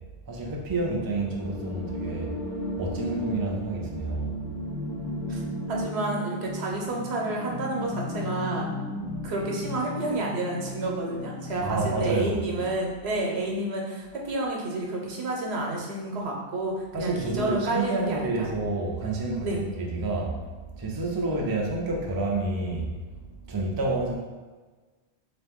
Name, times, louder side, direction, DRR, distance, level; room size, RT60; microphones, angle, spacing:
voice 1, 0.3-2.3 2.8-4.3 11.6-12.4 16.9-24.2, right 2 dB, 35° right, -1 dB, 0.3 m, -29 dB
sound 1, 0.8-12.8, left 1 dB, 55° left, 1.1 m, -35 dB
voice 2, 5.7-8.7 9.2-18.5 19.4-19.6, right 2 dB, 80° right, -1 dB, 1.0 m, -30 dB
3.3 x 2.9 x 3.5 m, 1.3 s
omnidirectional pair, 1.1 m